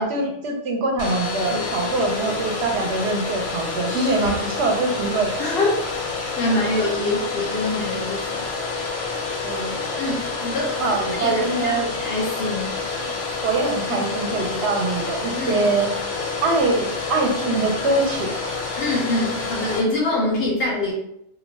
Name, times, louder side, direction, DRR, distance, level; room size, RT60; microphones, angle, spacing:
voice 1, 0.0-5.3 9.4-9.7 10.8-11.9 13.0-13.1 13.4-15.9 16.4-18.3, right 3 dB, 65° right, 2 dB, 0.8 m, -23 dB
Domestic sounds home sounds, 1.0-19.8, left 4 dB, 90° left, 1.0 m, -28 dB
voice 2, 5.4-5.8 6.4-8.4 10.0-13.1 15.3-15.7 18.8-20.9, left 2 dB, 65° left, -2 dB, 0.7 m, -25 dB
2.3 x 2.1 x 3.2 m, 0.77 s
omnidirectional pair, 1.3 m